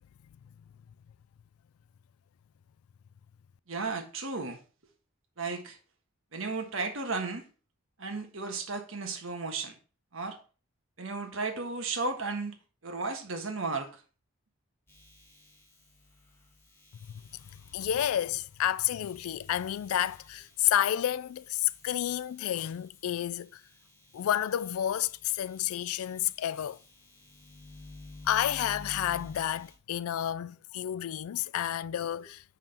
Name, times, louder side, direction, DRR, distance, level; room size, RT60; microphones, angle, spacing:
voice 1, 3.7-4.6 5.4-5.8 6.3-7.5 8.0-9.8 10.1-10.4 11.0-12.5 12.8-14.0 32.2-32.3, right 3 dB, 65° right, 1.4 m, -34 dB
sound 1, 14.9-23.2 23.6-29.7, left 2 dB, 10° left, 1.8 m, -52 dB
voice 2, 17.7-23.6 24.1-26.8 28.3-32.4, left 11 dB, 80° left, 0.3 m, -30 dB
7.5 x 5.5 x 4.3 m
head